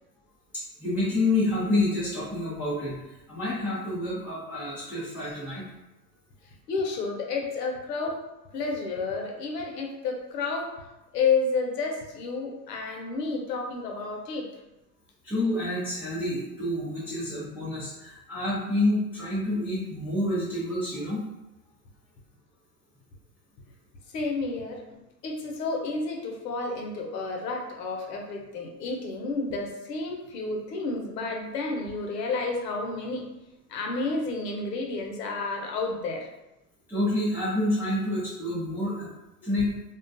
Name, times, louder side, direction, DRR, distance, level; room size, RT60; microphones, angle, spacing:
voice 1, 0.5-3.0 3.3-5.6 15.2-21.2 36.9-39.1 39.4-39.7, left 1 dB, 5° right, -12 dB, 0.4 m, -28 dB
voice 2, 6.7-8.2 8.5-10.7 11.1-14.5 24.1-24.8 25.2-33.3 33.7-36.3, left 3 dB, 75° left, 1 dB, 0.7 m, -30 dB
2.3 x 2.2 x 2.5 m, 0.98 s
hypercardioid pair, 115°, 49 cm